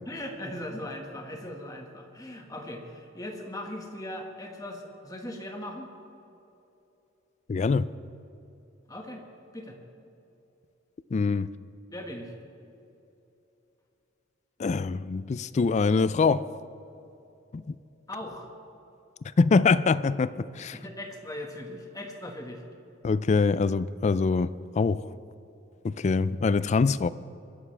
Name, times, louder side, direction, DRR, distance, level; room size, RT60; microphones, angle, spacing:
voice 1, 0.0-5.9 8.9-9.2 9.5-9.8 11.9-12.3 18.1-18.5 20.7-22.6, left 1 dB, 20° left, 2 dB, 1.6 m, -39 dB
voice 2, 7.5-7.9 11.1-11.5 14.6-16.4 17.5-17.8 19.4-20.8 23.0-24.5 24.8-25.0 25.8-27.1, left 4 dB, 35° left, 16 dB, 0.3 m, -24 dB
21.5 x 11.0 x 3.4 m, 2.9 s
head